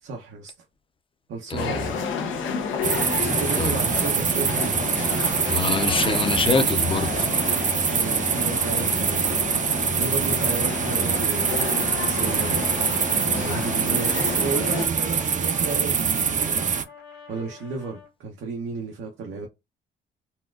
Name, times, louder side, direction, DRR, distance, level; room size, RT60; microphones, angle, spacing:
voice 1, 0.0-0.5 1.3-2.1 3.2-4.8 7.9-9.6 10.0-11.6 11.9-12.6 13.4-16.7 17.3-19.5, right 4 dB, 80° right, 0.8 m, -33 dB
voice 2, 1.5-1.8 3.6-3.8 5.5-7.3, left 4 dB, 25° left, 0.7 m, -24 dB
sound 1, 1.6-14.9, left 5 dB, 75° left, 0.8 m, -31 dB
sound 2, 2.8-16.8, right 6 dB, 40° right, 0.6 m, -24 dB
Trumpet, 10.7-13.7 14.0-18.1, left 4 dB, 55° left, 1.5 m, -44 dB
4.1 x 2.3 x 2.4 m
cardioid pair, 90°, 20 cm